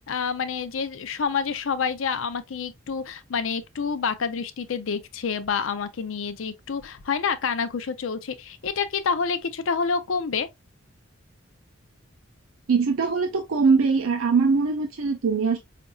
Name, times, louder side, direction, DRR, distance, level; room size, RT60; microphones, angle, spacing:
voice 1, 0.1-10.5, left 5 dB, 70° left, 0.5 m, -28 dB
voice 2, 12.7-15.6, right 5 dB, 85° right, 0.5 m, -22 dB
5.1 x 2.5 x 2.3 m
head